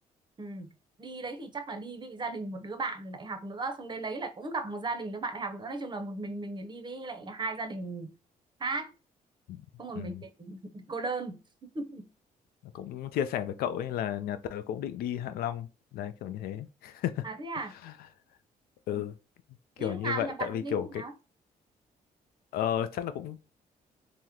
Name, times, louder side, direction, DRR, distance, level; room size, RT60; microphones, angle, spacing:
voice 1, 0.4-0.7 1.0-8.1 8.6-8.9 9.8-12.1 17.2-17.7 18.9-19.0 19.8-21.1, right 3 dB, 30° right, 0.6 m, -36 dB
voice 2, 12.7-17.3 17.8-17.9 18.9-19.1 19.8-21.0 22.5-23.4, left 10 dB, 85° left, 0.4 m, -33 dB
3.5 x 2.0 x 2.8 m
cardioid pair, 95°, 15 cm